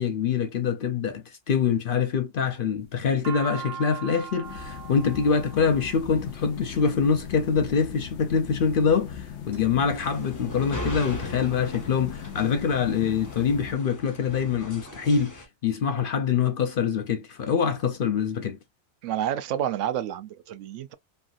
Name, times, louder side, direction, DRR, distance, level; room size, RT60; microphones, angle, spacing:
voice 1, 0.0-18.6, left 6 dB, 60° left, 0.6 m, -25 dB
sound 1, 2.8-7.0 7.9-8.3 8.9-9.6 9.9-10.0 10.2-11.0, right 7 dB, 60° right, 0.9 m, -40 dB
sound 2, 4.4-13.7, left 8 dB, 80° left, 1.0 m, -39 dB
sound 3, 9.9-15.5, equal, 20° left, 0.6 m, -39 dB
voice 2, 19.0-20.9, right 10 dB, 85° right, 0.9 m, -29 dB
3.2 x 2.5 x 2.4 m
omnidirectional pair, 1.2 m